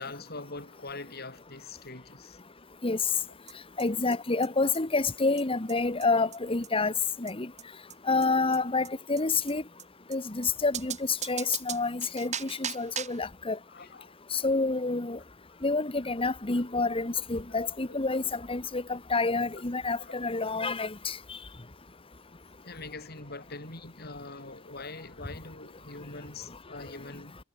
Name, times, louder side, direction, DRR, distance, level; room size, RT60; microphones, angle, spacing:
voice 1, 0.0-2.4 13.7-14.2 16.8-16.9 17.5-17.6 17.9-18.0 19.5-19.6 20.0-20.2 22.6-27.4, left 3 dB, 55° left, 7.6 m, -43 dB
sound 1, 3.2-3.3 3.5-3.6 3.8-3.9 4.1-4.2 4.4-4.5 4.7-4.8 5.1-5.2 5.4-5.5 5.7-5.8 6.0-6.1 6.3-6.4 6.6-6.7 7.0-7.1 7.3-7.4 7.6-7.7 7.9-8.0 8.2-8.3 8.5-8.6 8.8-8.9 9.2-9.3 9.5-9.6 9.8-9.9 10.1-10.2 10.4-10.5 10.7-13.3, right 8 dB, 35° right, 5.6 m, -38 dB
voice 2, 3.8-6.9 7.2-7.5 8.1-9.6 10.1-13.6 14.3-15.2 15.6-21.2, left 3 dB, 30° left, 1.3 m, -28 dB
head